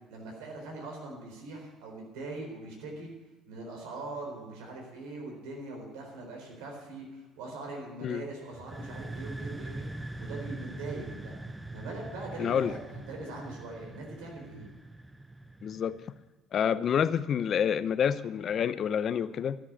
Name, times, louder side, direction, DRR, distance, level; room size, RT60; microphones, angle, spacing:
voice 1, 0.1-3.1 3.5-9.9 10.2-11.3 11.7-14.7, right 2 dB, 85° right, 0 dB, 4.1 m, -41 dB
sound 1, 8.5-16.2, right 2 dB, 10° right, 0.8 m, -42 dB
voice 2, 12.4-12.7 15.6-16.0 16.5-19.6, left 8 dB, 55° left, 14 dB, 0.6 m, -28 dB
13.0 x 7.5 x 8.7 m, 1.1 s
supercardioid pair, 75°, 0 cm